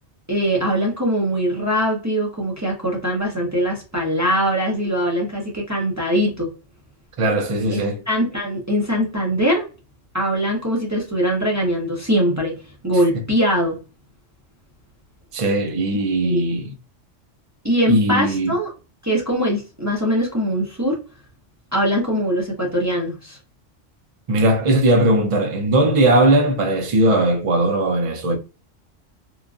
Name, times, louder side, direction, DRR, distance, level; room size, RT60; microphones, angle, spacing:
voice 1, 0.3-6.5 7.7-9.7 10.1-13.8 16.2-16.4 17.6-18.7 19.0-21.0 21.7-23.4, equal, 20° right, 0.6 m, -22 dB
voice 2, 7.2-8.0 15.3-16.7 17.9-18.5 24.3-28.4, right 1 dB, 60° right, 0.3 m, -18 dB
3.1 x 2.4 x 2.3 m
omnidirectional pair, 1.2 m